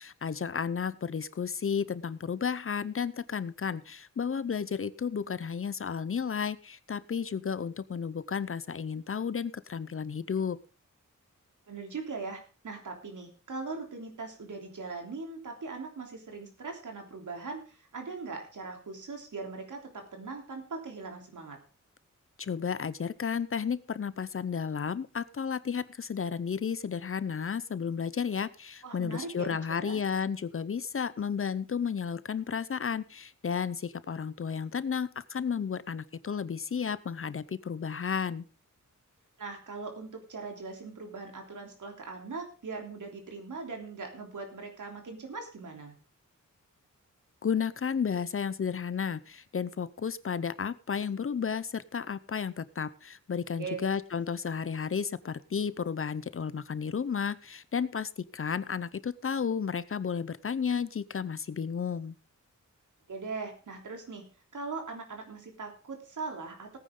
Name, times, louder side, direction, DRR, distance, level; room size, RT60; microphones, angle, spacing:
voice 1, 0.0-10.6 22.4-38.4 47.4-62.1, left 6 dB, 45° left, 16 dB, 0.6 m, -33 dB
voice 2, 11.7-21.6 28.8-30.0 39.4-45.9 53.6-53.8 63.1-64.3 64.5-66.8, right 4 dB, 75° right, 3 dB, 3.4 m, -40 dB
18.0 x 9.4 x 3.7 m, 0.35 s
wide cardioid pair, 135°, 31 cm